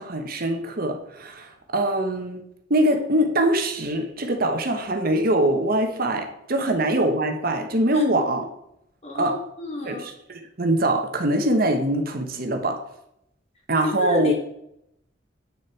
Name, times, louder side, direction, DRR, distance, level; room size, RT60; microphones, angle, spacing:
voice 1, 0.0-2.4 2.7-8.5 9.1-9.4 9.8-12.8 13.7-14.3, right 1 dB, 55° right, 5 dB, 1.2 m, -23 dB
voice 2, 9.0-10.1 13.8-14.3, left 1 dB, 35° left, 1 dB, 2.1 m, -33 dB
8.8 x 6.5 x 4.5 m, 0.78 s
head